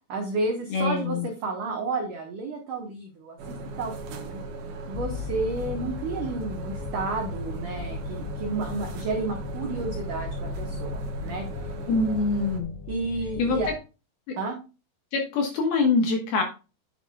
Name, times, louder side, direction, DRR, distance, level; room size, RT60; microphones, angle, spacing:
voice 1, 0.1-4.4 4.9-11.5 12.9-13.7 14.4-14.6, right 3 dB, 85° right, 2 dB, 1.8 m, -31 dB
voice 2, 0.7-1.3 11.9-12.7 13.4-13.6 14.3-14.4 15.1-16.4, left 4 dB, 65° left, 2 dB, 2.7 m, -24 dB
sound 1, 3.4-12.6, right 2 dB, 65° right, 2.6 m, -37 dB
sound 2, 4.9-13.8, left 7 dB, 85° left, 4.0 m, -38 dB
8.9 x 8.7 x 2.3 m, 0.31 s
omnidirectional pair, 5.7 m